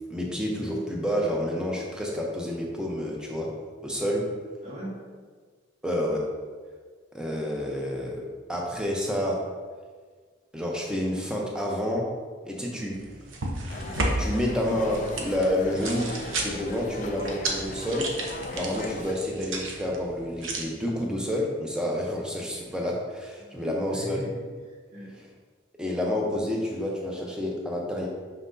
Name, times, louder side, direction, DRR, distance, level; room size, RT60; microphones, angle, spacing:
voice 1, 0.0-3.5 3.8-4.2 5.8-6.2 7.1-9.4 10.5-12.1 12.4-13.0 14.2-16.1 16.4-18.1 18.5-24.2 25.8-28.1, left 1 dB, 5° right, -2 dB, 0.8 m, -29 dB
voice 2, 4.6-5.0 12.6-12.9 23.4-25.2, equal, 35° right, -5 dB, 1.5 m, -40 dB
sound 1, 12.9-20.6, right 2 dB, 80° right, 0.9 m, -33 dB
sound 2, 13.7-19.1, left 3 dB, 40° left, 0.4 m, -38 dB
6.3 x 5.8 x 2.7 m, 1.5 s
head